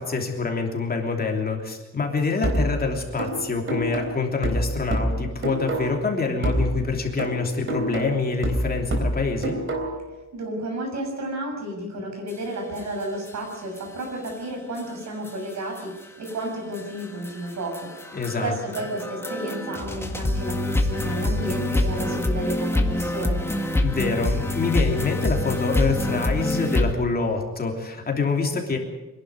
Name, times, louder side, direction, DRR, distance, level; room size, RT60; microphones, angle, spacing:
voice 1, 0.0-9.6 18.1-18.5 23.8-28.8, left 4 dB, 30° left, 2 dB, 3.1 m, -26 dB
sound 1, 2.4-6.1 6.4-10.1, right 1 dB, 45° right, 3.7 m, -27 dB
voice 2, 10.3-17.9 18.4-23.4, right 1 dB, 65° right, 2 dB, 7.2 m, -32 dB
sound 2, 12.3-12.4 12.8-12.9 13.3-13.4 13.8-13.9 14.3-14.4 14.8-14.9 15.2-26.9, left 1 dB, 10° left, 1.8 m, -26 dB
25.0 x 11.5 x 9.6 m, 1.1 s
wide cardioid pair, 145°, 29 cm